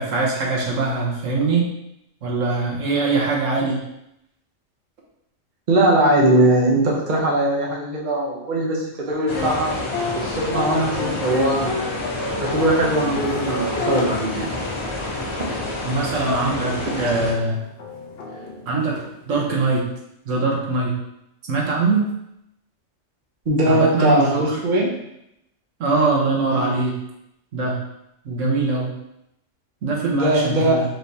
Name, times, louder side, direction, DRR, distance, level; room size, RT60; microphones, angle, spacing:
voice 1, 0.0-1.7 2.2-3.8 15.8-17.6 18.7-18.9 19.3-19.8 20.3-20.9 21.5-22.1 23.6-24.4 25.8-26.9 27.5-27.8 28.2-28.9 29.8-30.8, right 3 dB, 85° right, -3 dB, 1.3 m, -22 dB
voice 2, 5.7-11.8 12.4-14.5 23.5-25.0 26.4-26.7 30.1-30.8, right 1 dB, 45° right, -1 dB, 0.8 m, -20 dB
sound 1, 9.3-15.7 16.2-16.3 16.9-19.5, left 3 dB, 60° left, 0.9 m, -30 dB
sound 2, 9.3-17.3, left 2 dB, 35° left, 0.5 m, -29 dB
4.6 x 3.3 x 2.7 m, 0.81 s
omnidirectional pair, 1.3 m